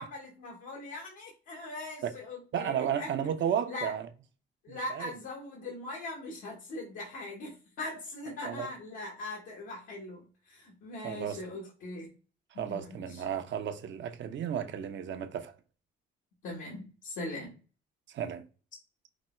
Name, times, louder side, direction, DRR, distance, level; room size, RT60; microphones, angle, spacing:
voice 1, 0.0-3.1 3.7-3.9 4.6-12.1 12.5-13.2 16.4-17.6, left 2 dB, 85° left, 1.4 m, -41 dB
voice 2, 2.5-4.1 4.7-5.1 8.4-8.7 11.0-11.6 12.5-15.5 18.1-18.5, right 9 dB, 65° right, 0.8 m, -33 dB
5.1 x 2.2 x 4.3 m
cardioid pair, 90°, 20 cm